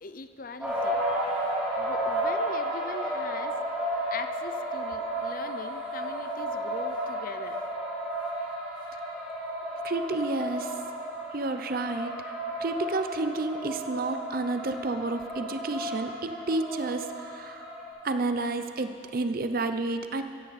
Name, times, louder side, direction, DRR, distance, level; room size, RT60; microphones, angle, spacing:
voice 1, 0.0-1.0 1.8-3.6 4.1-7.6, left 3 dB, 45° left, 10 dB, 0.6 m, -41 dB
sound 1, 0.6-17.9, right 1 dB, 10° right, 3.4 m, -33 dB
voice 2, 9.8-10.7 11.3-12.1 12.6-17.7 18.0-20.2, right 2 dB, 50° right, 8 dB, 0.7 m, -30 dB
16.0 x 15.0 x 4.2 m, 2.4 s
head